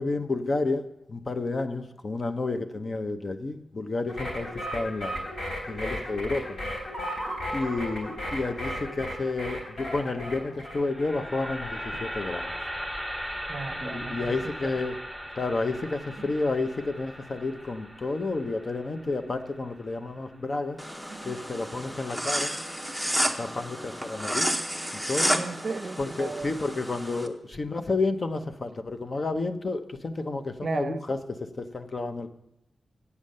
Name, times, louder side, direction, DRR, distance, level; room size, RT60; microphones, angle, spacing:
voice 1, 0.0-5.2 5.7-6.6 7.5-12.5 13.8-15.0 15.3-20.8 21.2-22.5 23.4-24.5 25.1-25.3 26.0-31.2 31.6-32.3, left 3 dB, 40° left, 8 dB, 0.7 m, -30 dB
sound 1, 4.1-11.2, equal, 70° left, 3.3 m, -35 dB
sound 2, 10.6-20.8, equal, 20° left, 1.6 m, -38 dB
voice 2, 13.5-14.4 14.6-14.7 16.2-16.8 19.0-19.3 20.0-20.7 21.1-22.0 22.5-22.6 22.9-23.3 25.3-26.7 30.6-31.0, right 4 dB, 50° right, 10 dB, 0.6 m, -39 dB
sound 3, 20.8-27.3, equal, 5° left, 0.7 m, -31 dB
8.3 x 7.1 x 6.5 m, 0.83 s
wide cardioid pair, 130°, 0 cm